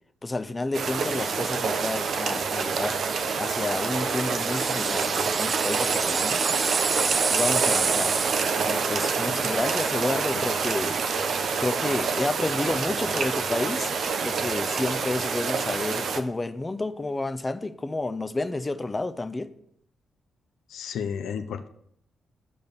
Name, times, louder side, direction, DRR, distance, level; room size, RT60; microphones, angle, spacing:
voice 1, 0.2-3.0 3.4-6.6 7.3-8.1 8.6-11.3 11.6-13.9 14.2-19.5, left 2 dB, 25° left, 0.8 m, -30 dB
sound 1, 0.7-16.2, right 5 dB, 65° right, 0.9 m, -27 dB
sound 2, 3.9-8.8, right 5 dB, 50° right, 0.5 m, -28 dB
voice 2, 20.7-21.7, left 7 dB, 75° left, 0.6 m, -32 dB
10.0 x 5.2 x 6.9 m
supercardioid pair, 50°, 0 cm